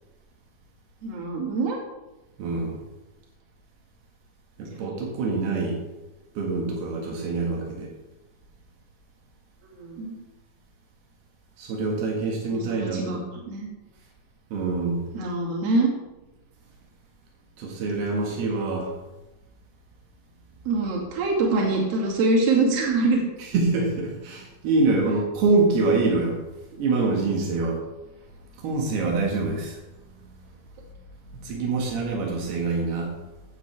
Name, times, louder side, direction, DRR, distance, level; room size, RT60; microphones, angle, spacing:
voice 1, 1.0-1.8 9.8-10.1 12.5-13.2 13.5-13.7 15.1-15.9 20.6-23.2, right 3 dB, 45° right, -3 dB, 3.1 m, -24 dB
voice 2, 2.4-2.8 4.6-5.8 6.4-7.9 11.6-13.2 14.5-15.0 17.6-18.9 23.5-26.4 26.7-27.8 28.6-29.8 30.2-30.4 31.4-33.1, right 3 dB, 90° right, -1 dB, 3.7 m, -25 dB
16.5 x 7.8 x 3.4 m, 1.1 s
omnidirectional pair, 4.4 m